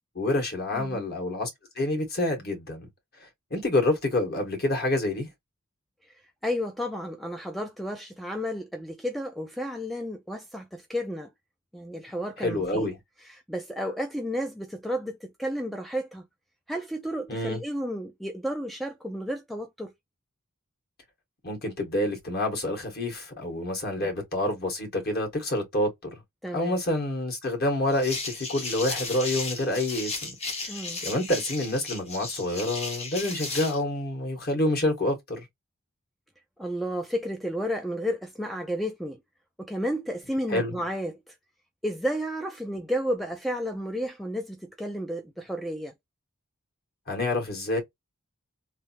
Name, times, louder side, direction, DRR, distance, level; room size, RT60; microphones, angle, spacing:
voice 1, 0.1-1.5 1.7-2.8 3.5-5.3 12.4-12.9 17.3-17.6 21.4-26.1 26.5-30.3 31.0-35.4 40.5-40.7 47.1-47.8, left 1 dB, 45° left, 1.7 m, -27 dB
voice 2, 0.7-1.0 6.4-11.3 11.7-12.9 13.2-16.2 16.7-19.9 23.9-24.1 26.4-26.8 30.7-31.0 36.6-39.2 39.6-41.3 41.8-45.9, equal, ahead, 0.4 m, -32 dB
sound 1, 27.9-33.8, left 3 dB, 30° left, 0.9 m, -35 dB
3.3 x 2.6 x 2.8 m
head